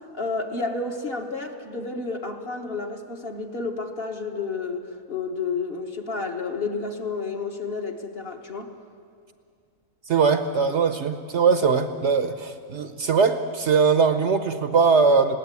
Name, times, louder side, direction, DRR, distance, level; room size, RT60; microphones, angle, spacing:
voice 1, 0.1-8.7, left 4 dB, 40° left, 3 dB, 1.5 m, -31 dB
voice 2, 10.1-15.4, right 5 dB, 55° right, 9 dB, 1.0 m, -21 dB
20.5 x 17.0 x 8.3 m, 2.3 s
omnidirectional pair, 1.5 m